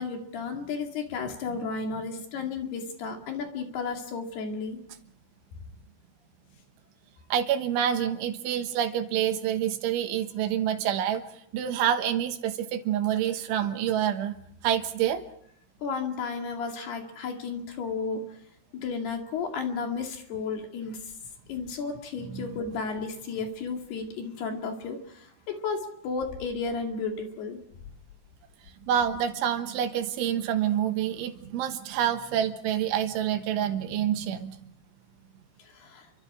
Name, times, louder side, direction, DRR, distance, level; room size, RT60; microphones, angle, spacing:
voice 1, 0.0-4.8 15.8-18.4 18.7-21.1 21.5-27.6 35.6-36.1, left 5 dB, 60° left, 3 dB, 4.1 m, -33 dB
voice 2, 7.3-11.2 11.5-14.4 14.6-15.2 22.3-22.5 28.8-34.6, right 10 dB, 80° right, 7 dB, 3.7 m, -27 dB
29.5 x 24.0 x 4.9 m, 0.72 s
omnidirectional pair, 5.6 m